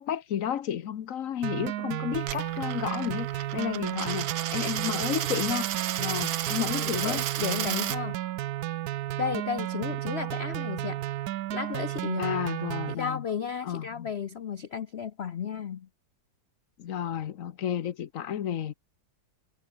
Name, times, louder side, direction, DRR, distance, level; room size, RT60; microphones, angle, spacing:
voice 1, 0.0-5.7 6.0-7.2 12.2-13.2 13.6-14.1 16.8-18.7, left 9 dB, 55° left, 1.0 m, -32 dB
sound 1, 1.4-12.9, right 13 dB, 65° right, 1.0 m, -33 dB
Coin (dropping), 2.2-8.0, right 12 dB, 85° right, 1.8 m, -33 dB
voice 2, 6.6-8.3 9.2-11.0 11.3-12.4 12.9-15.9, left 7 dB, 75° left, 0.5 m, -34 dB
omnidirectional pair, 2.1 m